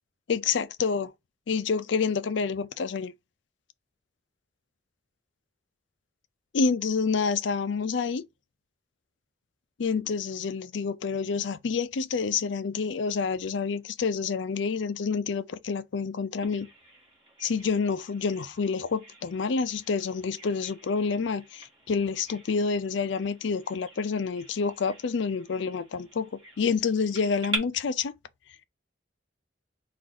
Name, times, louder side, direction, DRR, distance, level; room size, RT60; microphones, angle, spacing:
voice 1, 0.3-1.1 1.5-3.1 6.5-8.2 9.8-16.7 17.4-26.3 26.6-28.1, left 5 dB, 75° left, 0.5 m, -28 dB
Bird vocalization bird call bird song, 16.4-27.6, right 2 dB, 25° right, 1.8 m, -44 dB
4.7 x 2.5 x 3.9 m
head